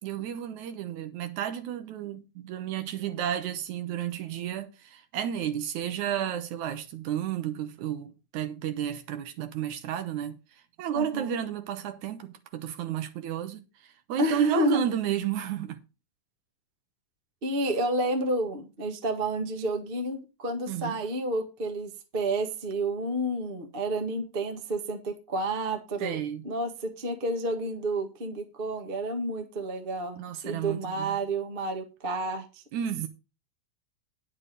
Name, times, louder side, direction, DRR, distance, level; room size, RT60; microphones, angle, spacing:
voice 1, 0.0-15.8 20.7-21.0 26.0-26.4 30.2-31.2 32.7-33.1, right 10 dB, 70° right, 2.2 m, -32 dB
voice 2, 10.9-11.4 14.2-14.8 17.4-26.2 26.4-32.6, right 1 dB, 30° right, 1.0 m, -30 dB
10.0 x 6.6 x 5.2 m
omnidirectional pair, 3.7 m